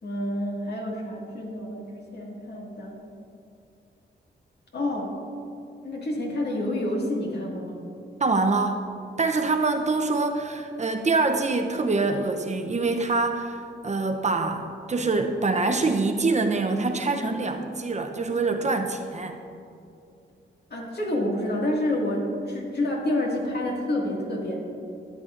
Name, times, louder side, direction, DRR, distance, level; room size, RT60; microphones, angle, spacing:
voice 1, 0.0-1.9 2.1-3.0 4.7-5.2 5.8-7.8 20.7-24.6, left 1 dB, 60° left, -2 dB, 1.9 m, -28 dB
voice 2, 8.2-8.9 9.2-14.6 14.9-19.4, right 3 dB, 35° right, 4 dB, 0.6 m, -25 dB
13.5 x 8.4 x 2.5 m, 2.6 s
wide cardioid pair, 95°, 20 cm